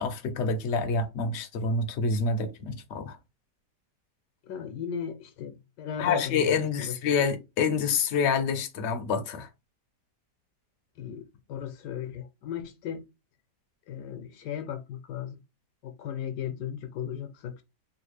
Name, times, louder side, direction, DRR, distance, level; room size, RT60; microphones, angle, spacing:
voice 1, 0.0-3.2 6.0-9.5, left 5 dB, 60° left, 0.7 m, -27 dB
voice 2, 4.4-7.0 11.0-13.0 13.9-15.4 15.8-17.6, left 8 dB, 80° left, 1.2 m, -36 dB
3.3 x 2.4 x 3.1 m
omnidirectional pair, 1.8 m